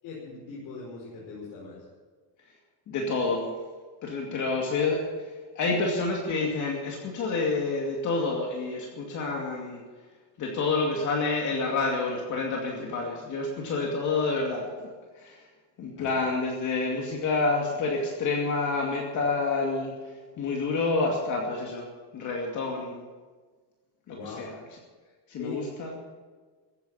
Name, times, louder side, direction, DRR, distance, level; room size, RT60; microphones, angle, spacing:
voice 1, 0.0-1.8 16.0-16.1 24.1-24.4 25.4-25.6, left 4 dB, 70° left, -5 dB, 5.4 m, -40 dB
voice 2, 2.9-3.5 4.0-9.8 10.4-14.7 15.1-15.4 15.8-21.8 22.1-23.0 24.1-24.5 25.3-25.9, left 3 dB, 45° left, 0 dB, 2.5 m, -28 dB
15.0 x 10.0 x 8.8 m, 1.4 s
cardioid pair, 165°, 40 cm